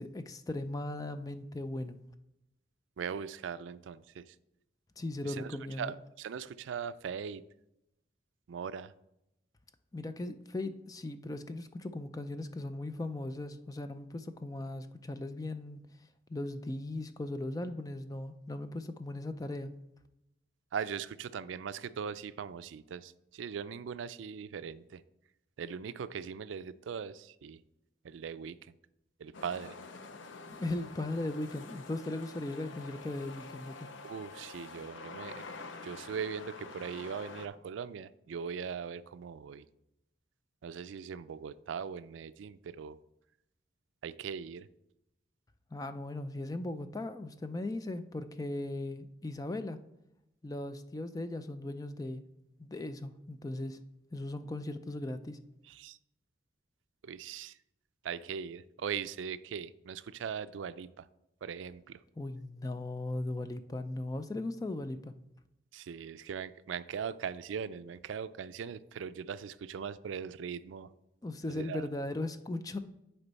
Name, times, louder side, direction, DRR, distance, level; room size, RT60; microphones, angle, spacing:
voice 1, 0.0-2.0 5.0-5.9 9.9-15.8 16.3-19.7 30.5-33.9 45.7-49.8 50.4-52.2 52.6-53.8 54.1-55.4 62.2-65.1 71.2-72.8, left 2 dB, 20° left, 10 dB, 0.4 m, -38 dB
voice 2, 3.0-4.3 5.2-7.4 8.5-8.9 20.7-25.0 25.6-27.6 28.0-28.6 29.2-29.8 34.0-35.4 35.8-39.6 40.6-43.0 44.0-44.7 55.7-56.0 57.0-57.6 58.0-61.1 61.4-62.0 65.7-70.9 71.5-71.9, right 7 dB, 85° right, 15 dB, 0.3 m, -40 dB
sound 1, 29.3-37.5, left 4 dB, 85° left, 0.6 m, -47 dB
9.9 x 4.5 x 4.1 m, 0.86 s
head